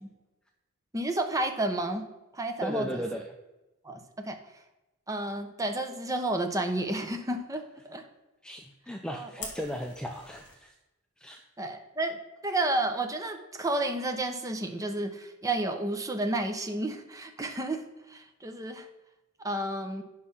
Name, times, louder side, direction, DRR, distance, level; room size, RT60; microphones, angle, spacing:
voice 1, 0.9-3.0 3.8-4.4 5.1-8.0 9.1-9.5 11.6-18.9 19.4-20.0, right 2 dB, 15° right, 5 dB, 0.8 m, -31 dB
voice 2, 2.6-3.3 8.4-10.7 11.2-11.4, equal, 5° left, 3 dB, 0.4 m, -36 dB
Fire, 9.4-10.5, left 4 dB, 55° left, 1.9 m, -43 dB
8.4 x 5.0 x 5.6 m, 1.0 s
head